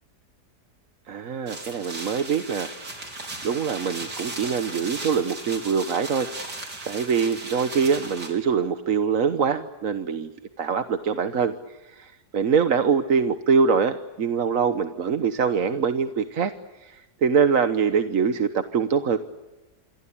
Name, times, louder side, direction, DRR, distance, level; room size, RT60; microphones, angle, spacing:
voice 1, 1.1-3.0 3.4-6.3 6.9-10.3 10.6-16.5 16.8-19.2, right 6 dB, 55° right, 9 dB, 1.4 m, -24 dB
sound 1, 1.5-8.3, right 2 dB, 85° right, 5.2 m, -36 dB
28.0 x 22.5 x 8.7 m, 1.1 s
omnidirectional pair, 1.7 m